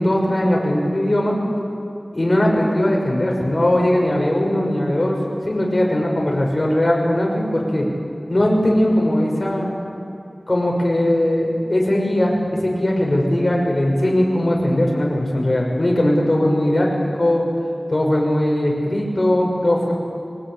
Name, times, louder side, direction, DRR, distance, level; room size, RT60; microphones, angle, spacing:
voice 1, 0.0-1.3 2.1-5.2 5.4-7.9 8.3-9.7 10.5-16.9 17.1-17.4 17.9-19.9, left 1 dB, 45° left, -1 dB, 5.9 m, -19 dB
24.0 x 19.5 x 8.9 m, 2.5 s
wide cardioid pair, 60°, 0 cm